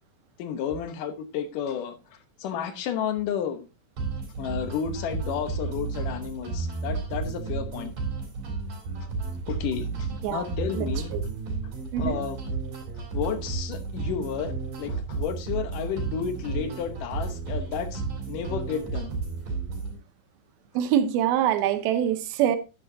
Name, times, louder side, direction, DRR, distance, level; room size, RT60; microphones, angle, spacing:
voice 1, 0.4-3.7 4.4-7.9 9.5-11.1 11.6-12.4 13.1-14.5 14.8-18.0 18.3-19.2, left 8 dB, 70° left, 2.5 m, -32 dB
sound 1, 4.0-20.0, right 4 dB, 60° right, 5.3 m, -32 dB
voice 2, 10.7-11.2 11.9-12.2 20.7-22.6, right 10 dB, 85° right, 2.7 m, -24 dB
10.5 x 9.8 x 2.7 m
omnidirectional pair, 4.3 m